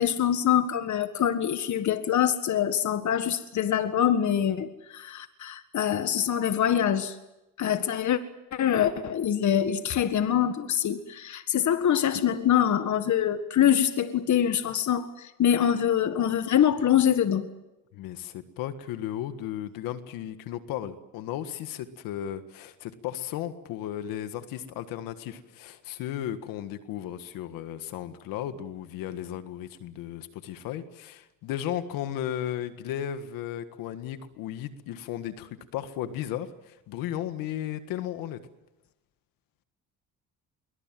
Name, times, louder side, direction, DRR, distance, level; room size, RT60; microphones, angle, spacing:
voice 1, 0.0-7.2 7.6-8.2 8.5-17.4, left 9 dB, 60° left, 9 dB, 1.7 m, -24 dB
voice 2, 17.9-38.4, left 11 dB, 90° left, 10 dB, 1.7 m, -35 dB
26.5 x 23.5 x 7.7 m, 0.97 s
supercardioid pair, 75°, 33 cm